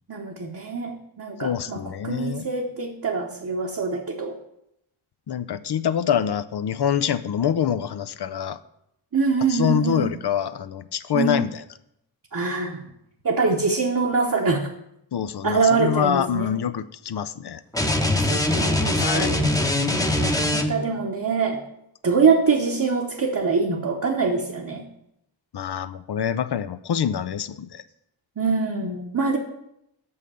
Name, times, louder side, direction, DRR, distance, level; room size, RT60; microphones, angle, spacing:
voice 1, 0.1-4.4 9.1-10.1 11.1-11.4 12.3-12.8 13.2-14.7 15.4-16.5 18.2-19.5 20.2-21.6 22.0-24.8 28.4-29.4, right 4 dB, 45° right, -1 dB, 1.0 m, -24 dB
voice 2, 1.4-2.5 5.3-8.6 9.5-11.5 15.1-17.6 19.0-19.3 25.5-27.8, left 8 dB, 60° left, 12 dB, 0.6 m, -25 dB
sound 1, 17.7-21.0, left 1 dB, 5° left, 0.9 m, -22 dB
6.4 x 5.7 x 6.8 m, 0.79 s
cardioid pair, 55°, 47 cm